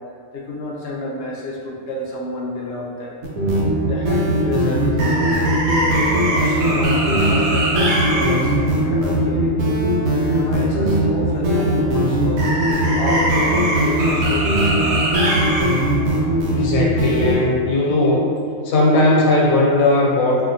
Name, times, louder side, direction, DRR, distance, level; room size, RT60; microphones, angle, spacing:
voice 1, 0.3-3.2 3.9-5.4 6.3-8.6 8.8-9.5 10.2-12.5 12.9-15.1 16.6-16.8, left 2 dB, 65° left, -2 dB, 0.8 m, -30 dB
sound 1, 3.2-17.3, right 1 dB, 85° right, 1.1 m, -18 dB
voice 2, 16.5-18.3 18.6-20.5, left 2 dB, 90° left, -3 dB, 1.0 m, -17 dB
3.4 x 2.3 x 2.6 m, 2.3 s
omnidirectional pair, 1.4 m